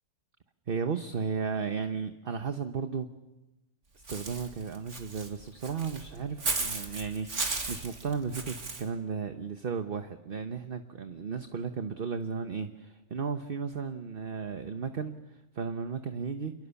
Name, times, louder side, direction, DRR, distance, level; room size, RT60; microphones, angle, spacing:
voice 1, 0.7-3.1 4.1-16.5, right 5 dB, 45° right, 8 dB, 1.2 m, -34 dB
Walk footsteps / Bird, 4.1-8.8, right 3 dB, 60° right, 2.7 m, -35 dB
28.0 x 21.5 x 7.1 m, 1.0 s
omnidirectional pair, 1.4 m